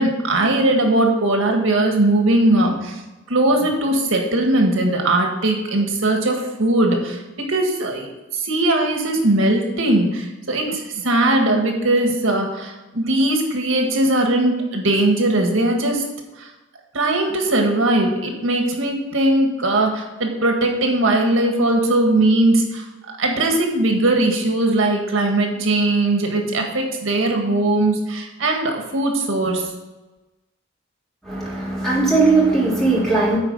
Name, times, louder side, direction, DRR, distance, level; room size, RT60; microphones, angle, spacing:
voice 1, 0.0-3.0 3.3-16.0 16.4-16.5 16.9-22.8 23.2-29.7, right 1 dB, 80° right, 2 dB, 1.7 m, -19 dB
voice 2, 31.2-33.4, right 3 dB, ahead, -7 dB, 3.0 m, -18 dB
9.5 x 4.5 x 6.5 m, 1.1 s
head